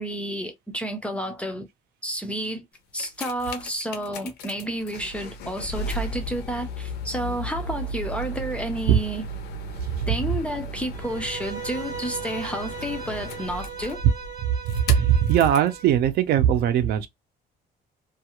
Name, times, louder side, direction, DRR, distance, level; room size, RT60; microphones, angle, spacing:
voice 1, 0.0-1.7 2.0-2.7 2.9-9.2 10.1-14.0, equal, 5° left, 0.4 m, -31 dB
sound 1, 2.8-15.7 16.5-16.6, equal, 70° left, 0.6 m, -35 dB
Bowed string instrument, 10.9-15.9, right 6 dB, 20° right, 0.8 m, -38 dB
voice 2, 14.4-17.1, right 9 dB, 65° right, 0.6 m, -20 dB
2.4 x 2.4 x 2.9 m
cardioid pair, 170°, 17 cm